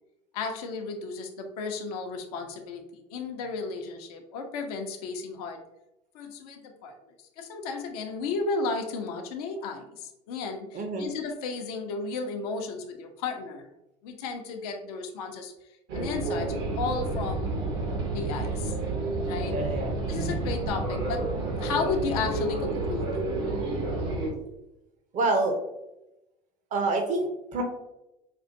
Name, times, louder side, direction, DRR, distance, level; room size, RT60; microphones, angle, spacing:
voice 1, 0.3-5.6 6.1-7.0 7.4-13.7 14.0-15.5 15.9-17.5 18.1-18.7 19.2-19.6 20.1-21.2 21.6-23.2, left 4 dB, 70° left, 3 dB, 0.7 m, -33 dB
voice 2, 10.7-11.1 19.5-20.3 25.1-25.6 26.7-27.6, right 3 dB, 35° right, 3 dB, 0.8 m, -27 dB
sound 1, 15.9-24.3, right 2 dB, 60° right, 1.1 m, -30 dB
5.2 x 2.5 x 2.6 m, 0.91 s
figure-of-eight pair, 70°, 21 cm